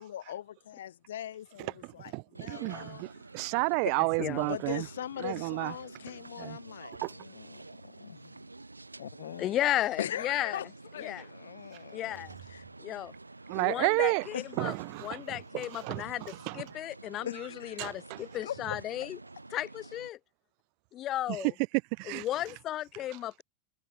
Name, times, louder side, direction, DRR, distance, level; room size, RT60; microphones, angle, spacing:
voice 1, 0.0-3.0 4.4-8.5 9.0-9.5 10.0-10.7 10.9-12.7 14.3-14.5 17.3-17.8 18.4-19.1, left 11 dB, 60° left, 2.2 m, -41 dB
voice 2, 1.8-4.9 5.2-5.7 6.4-6.6 7.0-7.1 13.5-14.3 14.6-16.6 17.8-18.2 22.0-22.3, right 40 dB or more, 45° right, 1.0 m, -32 dB
sound 1, 2.3-20.1, right 2 dB, 80° right, 0.7 m, -50 dB
voice 3, 4.2-4.6 9.4-10.6 11.0-11.2 11.9-12.3 12.8-13.1 13.5-14.7 15.0-16.2 16.5-19.2 19.5-20.2 21.0-21.4 22.1-23.4, left 13 dB, 35° left, 0.4 m, -34 dB
figure-of-eight pair, 90°, 0 cm